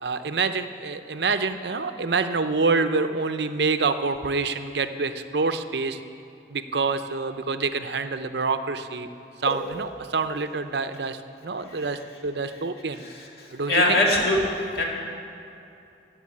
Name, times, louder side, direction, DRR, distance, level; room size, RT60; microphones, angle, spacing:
voice 1, 0.0-6.0 6.5-9.1 9.4-13.0 13.5-14.0, right 4 dB, 65° right, 9 dB, 0.7 m, -27 dB
voice 2, 9.5-9.8 13.7-14.8, left 1 dB, 55° left, -2 dB, 2.5 m, -22 dB
16.0 x 7.5 x 8.6 m, 2.7 s
head